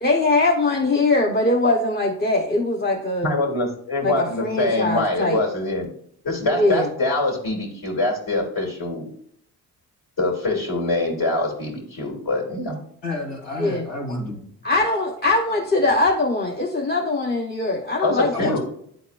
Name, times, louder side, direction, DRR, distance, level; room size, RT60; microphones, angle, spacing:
voice 1, 0.0-3.3 4.0-5.4 6.5-6.9 13.6-13.8 14.6-18.6, left 2 dB, 25° left, -1 dB, 1.0 m, -21 dB
voice 2, 3.2-5.9 6.2-9.1 10.2-12.8 18.0-18.6, left 2 dB, 60° left, -3 dB, 2.6 m, -24 dB
voice 3, 13.0-14.4 18.3-18.6, left 2 dB, 90° left, -5 dB, 2.6 m, -29 dB
10.0 x 4.1 x 2.5 m, 0.66 s
supercardioid pair, 60°, 40 cm